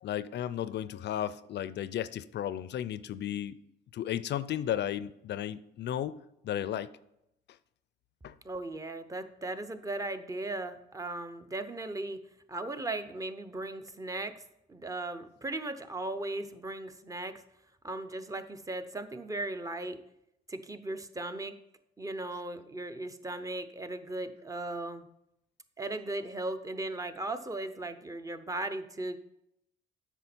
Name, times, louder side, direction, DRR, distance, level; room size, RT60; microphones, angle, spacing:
voice 1, 0.0-3.6 3.9-6.2 6.4-6.9 8.2-8.3, left 10 dB, 60° left, 0.4 m, -34 dB
voice 2, 8.4-12.2 12.5-14.3 14.7-17.4 17.8-20.0 20.5-21.5 22.0-25.1 25.8-29.2, right 2 dB, 15° right, 0.7 m, -37 dB
8.1 x 6.0 x 4.3 m
cardioid pair, 90°, 20 cm